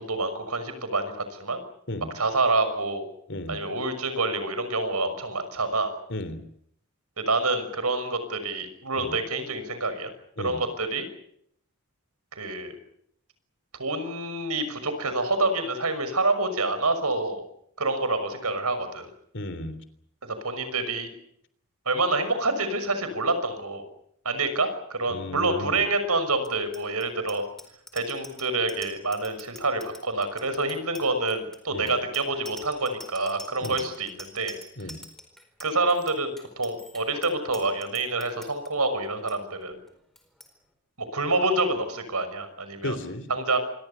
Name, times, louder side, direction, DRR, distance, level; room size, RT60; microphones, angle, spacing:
voice 1, 0.0-1.6 2.1-3.1 3.5-6.0 7.2-10.1 10.4-11.1 12.3-12.7 13.8-17.4 17.8-19.1 20.4-21.1 21.9-23.9 24.2-27.4 27.9-34.6 35.6-39.8 41.0-43.0 43.3-43.6, right 2 dB, 90° right, 10 dB, 6.1 m, -27 dB
voice 2, 6.1-6.4 9.0-9.1 10.4-10.6 19.3-19.8 25.1-25.8 31.7-31.9 33.6-33.8 34.8-35.0 42.8-43.3, left 1 dB, 55° left, 12 dB, 3.4 m, -34 dB
Bicycle bell, 26.4-38.7 39.0-39.3 39.6-39.9 40.1-40.5, equal, ahead, 4.5 m, -46 dB
27.0 x 24.0 x 7.0 m, 0.69 s
head